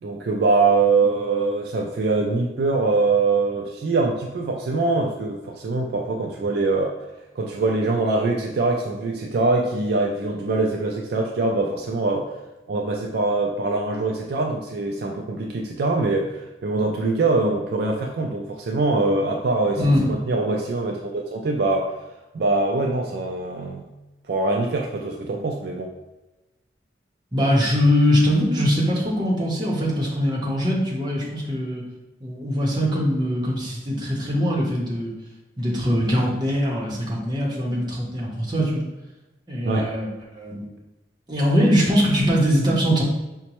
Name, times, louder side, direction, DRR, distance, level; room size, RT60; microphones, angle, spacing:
voice 1, 0.0-6.9 7.4-12.3 12.7-22.0 22.3-23.9 24.3-25.9 39.7-39.9, right 3 dB, 60° right, 1 dB, 0.3 m, -23 dB
voice 2, 19.8-20.1 27.3-31.8 32.2-35.1 35.6-38.8 39.5-40.1 40.3-40.6 41.3-43.0, equal, 25° right, -4 dB, 0.8 m, -22 dB
5.0 x 2.1 x 2.9 m, 1.0 s
head